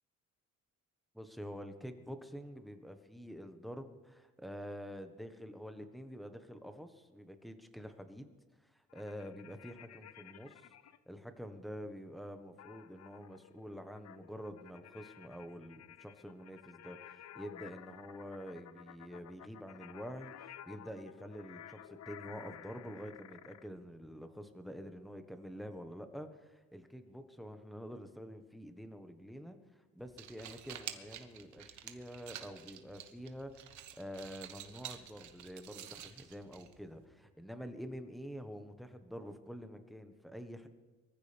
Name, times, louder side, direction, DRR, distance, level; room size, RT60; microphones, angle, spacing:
voice 1, 1.1-8.3 8.6-10.7 11.1-40.7, equal, ahead, 7 dB, 1.4 m, -47 dB
sound 1, 8.9-11.0 12.6-23.7, left 10 dB, 60° left, 0.8 m, -54 dB
sound 2, 30.0-37.0, right 10 dB, 70° right, 1.3 m, -50 dB
23.0 x 14.5 x 3.5 m, 1.2 s
cardioid pair, 90°, 30 cm